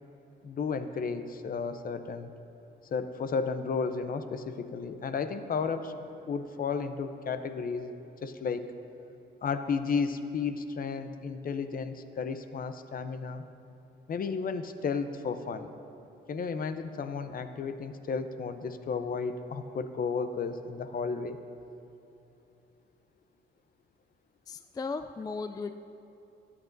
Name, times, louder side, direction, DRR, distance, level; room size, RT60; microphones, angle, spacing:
voice 1, 0.4-2.3 2.9-5.9 6.3-7.9 8.2-8.7 9.4-13.4 14.1-15.7 16.3-21.4, left 5 dB, 45° left, 10 dB, 0.7 m, -33 dB
voice 2, 24.5-25.7, left 4 dB, 20° left, 9 dB, 0.3 m, -36 dB
24.0 x 8.7 x 2.6 m, 2.9 s
cardioid pair, 90°, 20 cm